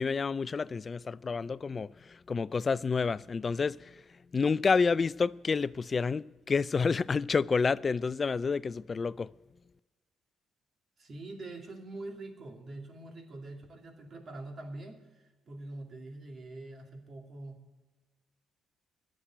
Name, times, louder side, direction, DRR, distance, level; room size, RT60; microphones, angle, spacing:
voice 1, 0.0-3.9 4.3-9.3, left 5 dB, 35° left, 0.3 m, -29 dB
voice 2, 11.0-17.8, right 2 dB, 45° right, 2.4 m, -44 dB
11.5 x 7.4 x 9.0 m
cardioid pair, 90°, 0 cm